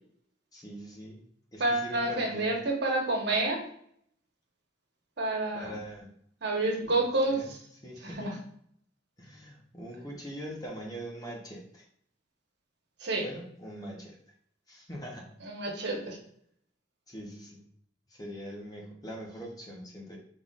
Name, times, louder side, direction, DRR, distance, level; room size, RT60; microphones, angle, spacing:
voice 1, 0.5-1.2 1.5-2.5 5.5-6.1 6.8-6.9 7.3-7.5 7.8-8.3 9.2-11.8 13.2-14.2 14.7-15.3 17.1-17.6 18.1-20.2, equal, 20° left, -1 dB, 1.0 m, -42 dB
voice 2, 1.6-3.6 5.2-5.7 6.4-7.6 8.0-8.3 13.0-13.2 15.4-16.2, right 2 dB, 65° right, -1 dB, 1.3 m, -29 dB
5.7 x 3.8 x 2.5 m, 0.66 s
head